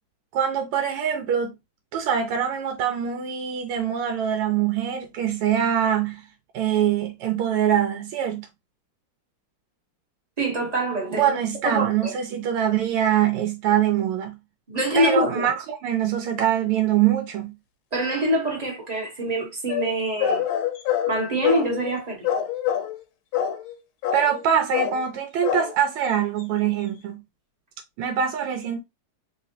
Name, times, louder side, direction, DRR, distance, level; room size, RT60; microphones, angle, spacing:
voice 1, 0.3-1.5 1.9-6.2 6.5-8.5 11.1-14.4 14.9-17.5 24.1-27.2 28.0-28.8, right 9 dB, 85° right, 1.6 m, -23 dB
voice 2, 10.4-11.4 11.6-12.1 14.7-15.5 17.9-20.4 21.1-22.2, right 1 dB, 25° right, 1.0 m, -25 dB
sound 1, 19.7-22.0 22.2-23.0 23.3-23.8 24.0-24.5 24.7-25.0 25.4-25.7 26.0-26.1 26.4-26.5, left 9 dB, 80° left, 1.5 m, -26 dB
3.7 x 3.0 x 2.7 m
omnidirectional pair, 2.4 m